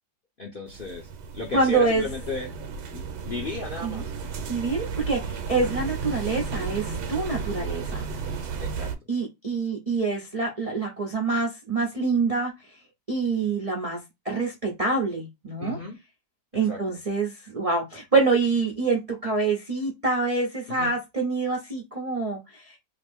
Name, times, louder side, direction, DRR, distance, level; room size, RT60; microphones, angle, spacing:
voice 1, 0.4-2.5 2.9-4.1 5.6-5.8 8.6-8.9 15.6-16.0 16.6-16.8 20.7-20.9, left 3 dB, 60° left, 0.5 m, -35 dB
sound 1, 0.7-9.0, right 5 dB, 85° right, 1.2 m, -33 dB
voice 2, 1.5-2.0 3.8-4.0 4.5-8.1 9.1-12.5 13.1-15.8 16.5-22.8, right 3 dB, 70° right, 0.3 m, -26 dB
2.9 x 2.5 x 3.4 m
omnidirectional pair, 1.8 m